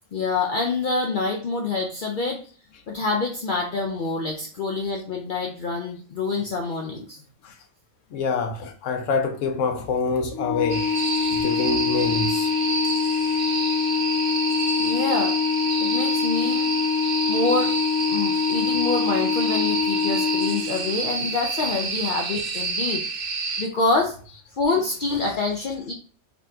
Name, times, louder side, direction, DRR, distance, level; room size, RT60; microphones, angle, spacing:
voice 1, 0.1-2.4 2.9-7.2 14.8-15.3 15.8-16.7 17.3-17.7 18.1-23.0 23.6-24.2 24.5-25.9, left 3 dB, 55° left, 0.6 m, -26 dB
voice 2, 8.1-12.5 24.7-24.8 25.3-25.4, left 4 dB, 85° left, 1.0 m, -26 dB
Organ, 10.3-21.2, left 6 dB, 15° left, 0.9 m, -24 dB
sound 1, 10.7-23.7, right 4 dB, 55° right, 0.7 m, -29 dB
4.0 x 2.8 x 2.6 m
omnidirectional pair, 1.3 m